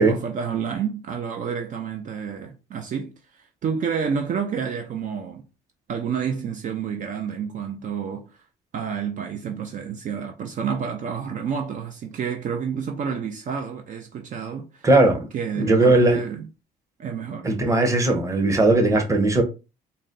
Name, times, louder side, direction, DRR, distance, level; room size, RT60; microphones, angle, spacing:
voice 1, 0.0-5.5 5.9-8.5 8.7-14.9 15.3-16.5 17.0-17.5, right 7 dB, 50° right, 0.6 m, -29 dB
voice 2, 14.8-15.3 15.6-16.2 17.4-19.4, right 2 dB, 20° right, 1.0 m, -18 dB
3.9 x 2.2 x 3.8 m
cardioid pair, 110°, 17 cm